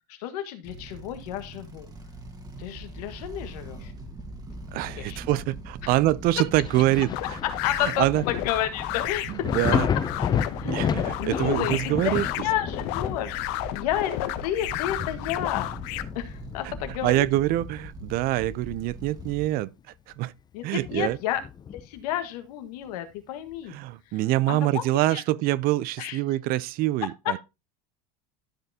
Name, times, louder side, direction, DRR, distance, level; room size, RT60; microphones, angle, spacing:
voice 1, 0.1-1.9 2.6-3.9 4.5-4.6 5.0-5.4 5.8-5.9 7.6-9.5 10.4-10.8 11.2-13.4 13.7-15.7 16.1-17.3 20.5-21.4 21.8-23.8 24.5-25.2 26.0-26.2 27.2-27.4, left 11 dB, 80° left, 1.6 m, -31 dB
sound 1, 0.6-19.5, right 1 dB, 20° right, 1.6 m, -41 dB
voice 2, 4.7-7.4 7.8-8.2 9.3-9.9 10.6-12.3 16.6-16.7 17.0-19.7 20.2-20.3 20.6-21.2 23.7-27.4, right 16 dB, 50° right, 0.5 m, -25 dB
Thunder, 6.5-17.9 18.3-19.8 20.1-20.2 20.8-22.1 23.5-23.6, left 7 dB, 20° left, 0.5 m, -33 dB
sound 2, 7.1-16.0, left 16 dB, 65° left, 0.8 m, -32 dB
12.5 x 5.7 x 2.8 m
supercardioid pair, 125°, 20 cm